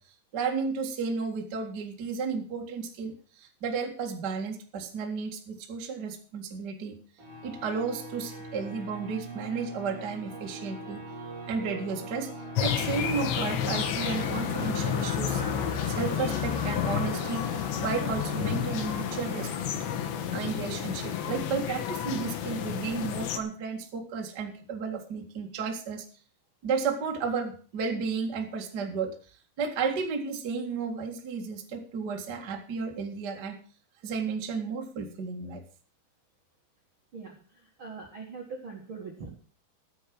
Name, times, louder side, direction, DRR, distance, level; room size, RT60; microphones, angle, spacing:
voice 1, 0.3-6.9 7.4-11.0 11.5-12.3 12.6-15.4 15.9-17.5 17.8-19.5 20.3-26.0 26.6-29.1 29.6-33.6 34.0-35.6, right 5 dB, 75° right, 3 dB, 0.9 m, -33 dB
sound 1, 7.2-22.5, right 2 dB, 30° right, 4.2 m, -41 dB
sound 2, 12.6-23.4, left 10 dB, 75° left, 3.5 m, -31 dB
voice 2, 37.8-39.3, right 4 dB, 60° right, 0 dB, 1.3 m, -41 dB
14.0 x 7.7 x 6.1 m, 0.42 s
omnidirectional pair, 5.4 m